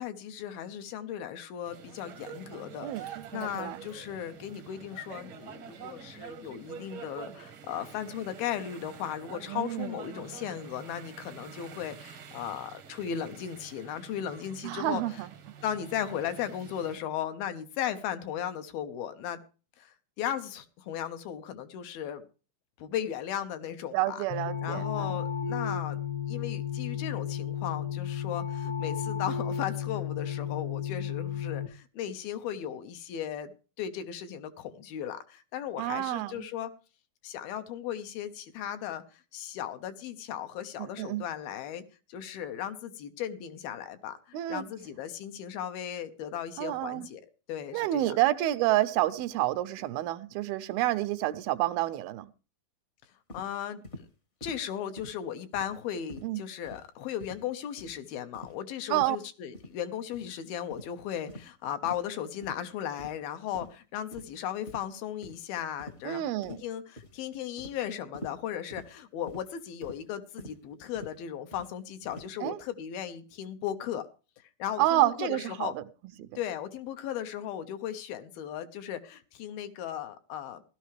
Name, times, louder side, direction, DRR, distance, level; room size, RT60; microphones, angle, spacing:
voice 1, 0.0-15.2 15.6-19.4 19.8-22.2 22.8-24.3 24.6-26.0 26.3-33.5 33.8-36.7 37.2-41.8 42.1-47.2 47.5-48.1 53.3-54.1 54.4-74.1 74.6-75.7 76.4-80.6, left 10 dB, 80° left, 2.9 m, -36 dB
sound 1, 1.7-17.0, right 8 dB, 65° right, 1.3 m, -47 dB
voice 2, 2.8-3.8 9.5-10.0 14.6-15.3 23.9-25.1 35.8-36.5 40.8-41.2 44.3-44.7 46.6-47.1 47.7-52.3 56.2-56.4 58.9-59.2 66.1-66.6 72.4-72.6 74.8-75.8 76.2-76.3, right 15 dB, 85° right, 2.6 m, -29 dB
sound 2, 24.3-31.7, left 9 dB, 60° left, 1.3 m, -33 dB
sound 3, 53.3-53.5 53.8-54.1 54.4-54.6 55.0-55.2 55.5-55.8 56.1-56.3 56.6-56.9 57.2-57.4 57.8-58.0 58.3-58.6 58.9-59.1 59.5-59.7 60.1-60.3 60.7-60.9 61.3-61.5 61.8-62.1 62.4-62.6 63.0-63.3 63.5-63.7 64.1-64.4 64.7-64.9 65.2-65.4 65.8-66.1 66.4-66.7 67.0-67.2 67.6-67.8 68.1-68.4 68.7-68.9 69.3-69.5 69.8-70.0 70.4-70.6 70.9-71.1 71.5-71.7 72.1-72.3, left 1 dB, 40° left, 1.0 m, -45 dB
16.5 x 12.5 x 3.2 m
omnidirectional pair, 4.3 m